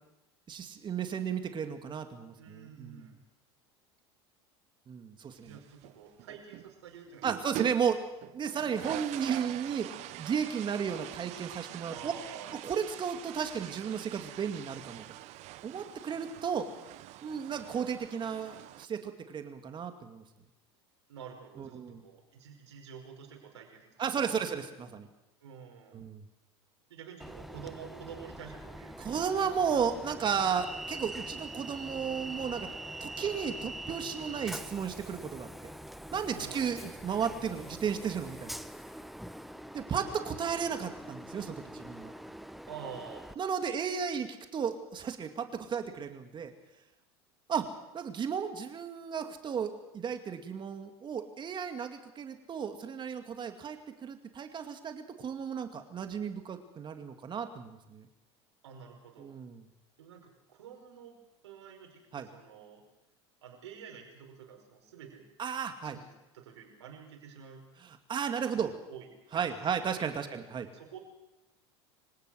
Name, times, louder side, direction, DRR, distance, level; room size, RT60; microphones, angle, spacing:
voice 1, 0.5-3.1 4.9-5.6 7.2-8.0 8.3-12.1 12.5-15.0 15.6-16.7 17.2-20.2 21.6-22.0 24.0-25.1 25.9-26.2 29.0-32.7 33.0-35.5 36.1-38.6 39.7-42.1 43.4-46.5 47.5-47.7 47.9-58.1 59.2-59.6 62.1-62.3 65.4-66.0 67.8-68.7 69.3-70.7, right 7 dB, 35° right, 7 dB, 2.4 m, -34 dB
voice 2, 2.4-3.2 5.4-7.5 11.9-12.5 21.1-24.4 25.4-26.0 26.9-29.2 36.3-36.9 42.7-43.3 58.6-59.4 60.0-61.2 61.4-62.8 63.4-65.3 65.9-66.0 66.3-67.6 68.5-69.4 69.8-69.9 70.2-70.4 70.7-71.0, right 7 dB, 80° right, 2 dB, 5.4 m, -49 dB
sound 1, 5.3-6.7 7.1-8.0 8.2-18.9, right 17 dB, 55° right, 0.9 m, -44 dB
Train, 27.2-43.3, right 1 dB, ahead, 1.0 m, -44 dB
25.5 x 17.5 x 6.5 m, 0.92 s
hypercardioid pair, 90°, 14 cm